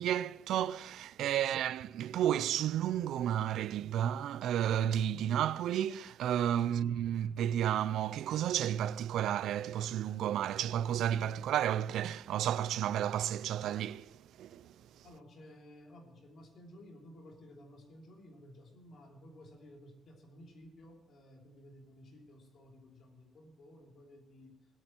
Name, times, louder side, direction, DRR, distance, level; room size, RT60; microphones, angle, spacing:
voice 1, 0.0-14.8, right 10 dB, 80° right, 0.4 m, -32 dB
voice 2, 15.0-24.6, left 1 dB, 60° left, 3.1 m, -55 dB
19.5 x 8.7 x 4.4 m
cardioid pair, 90°, 0 cm